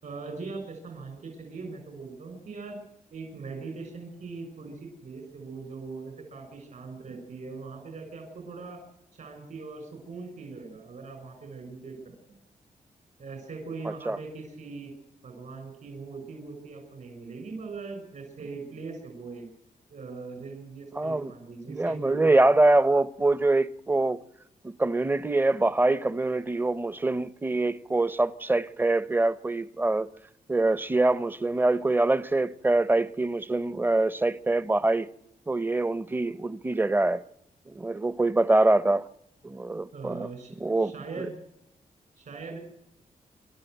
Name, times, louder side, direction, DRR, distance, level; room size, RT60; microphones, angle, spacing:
voice 1, 0.0-2.8 3.1-8.8 9.1-12.1 13.2-14.9 15.2-19.5 19.9-22.4 39.9-41.3 42.2-42.6, right 4 dB, 65° right, 6.2 m, -41 dB
voice 2, 13.8-14.2 21.0-21.3 21.7-24.2 24.6-30.1 30.5-35.1 35.5-37.2 37.7-39.1 39.4-40.3 40.6-40.9, right 2 dB, 15° right, 0.7 m, -24 dB
28.0 x 12.5 x 7.9 m
wide cardioid pair, 140°, 14 cm